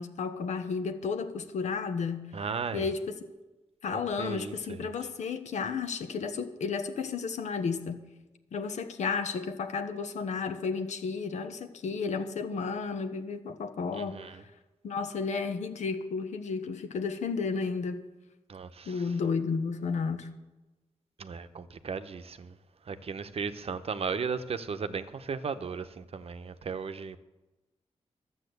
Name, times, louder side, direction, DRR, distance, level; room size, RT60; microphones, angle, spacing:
voice 1, 0.0-2.3 2.7-3.2 3.8-8.0 8.5-14.4 14.8-18.1 18.9-20.3, left 5 dB, 85° left, 1.1 m, -32 dB
voice 2, 2.3-2.8 3.9-4.9 13.9-14.4 18.5-19.0 21.2-22.5 22.9-27.2, right 5 dB, 55° right, 0.8 m, -36 dB
12.0 x 7.5 x 8.0 m
cardioid pair, 80°, 12 cm